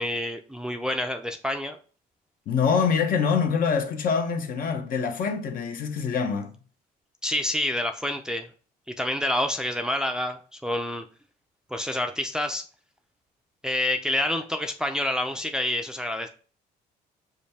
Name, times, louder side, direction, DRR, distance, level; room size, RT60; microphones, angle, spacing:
voice 1, 0.0-1.8 7.2-8.5 9.0-11.0 11.7-12.6 13.6-16.3, left 1 dB, 5° right, 0.5 m, -28 dB
voice 2, 2.5-6.5, left 6 dB, 55° left, 0.9 m, -25 dB
5.2 x 2.3 x 4.2 m
cardioid pair, 110°, 17 cm